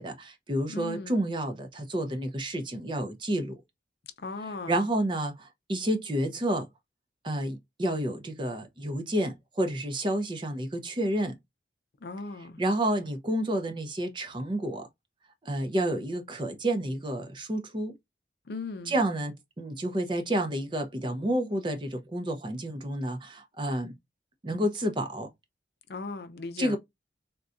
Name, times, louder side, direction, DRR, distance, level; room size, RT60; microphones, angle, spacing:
voice 1, 0.0-3.6 4.4-6.7 7.2-11.4 12.4-14.9 15.4-18.0 18.8-23.9 24.4-25.3 26.6-26.8, right 1 dB, 25° right, 0.5 m, -30 dB
voice 2, 0.7-1.2 4.2-4.7 12.0-12.6 18.5-18.9 25.9-26.8, left 3 dB, 65° left, 0.5 m, -37 dB
3.9 x 2.2 x 2.4 m
head